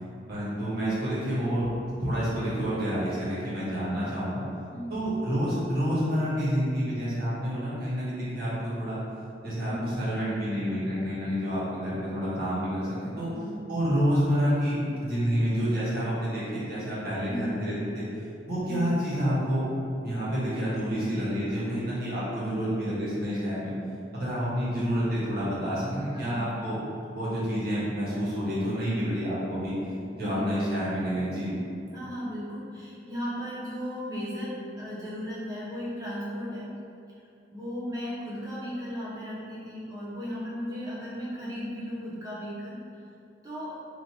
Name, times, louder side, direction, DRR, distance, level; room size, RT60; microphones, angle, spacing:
voice 1, 0.3-1.7 2.0-4.4 4.9-9.0 9.4-13.3 13.7-18.1 18.5-19.6 20.0-23.7 24.1-26.8 27.1-29.7 30.2-31.5, equal, 50° right, -9 dB, 1.3 m, -28 dB
voice 2, 4.7-5.1 9.6-10.0 13.1-13.6 17.2-17.5 18.6-19.0 26.1-26.5 30.2-30.4 31.9-36.7 37.5-42.8 43.4-43.8, equal, 20° right, -8 dB, 0.8 m, -36 dB
3.3 x 2.5 x 4.2 m, 2.6 s
head